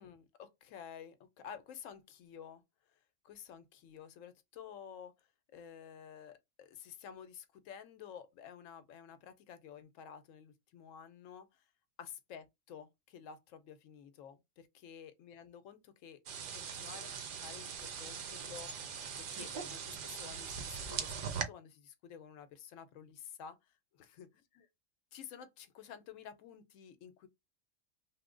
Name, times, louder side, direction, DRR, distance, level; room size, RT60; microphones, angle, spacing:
voice 1, 0.0-2.6 2.9-3.0 3.2-11.7 12.0-16.2 16.5-24.3 24.5-24.7 25.1-27.3, left 8 dB, 85° left, 1.0 m, -52 dB
sound 1, 16.3-21.4, right 7 dB, 60° right, 0.6 m, -41 dB
2.9 x 2.1 x 3.7 m
omnidirectional pair, 1.3 m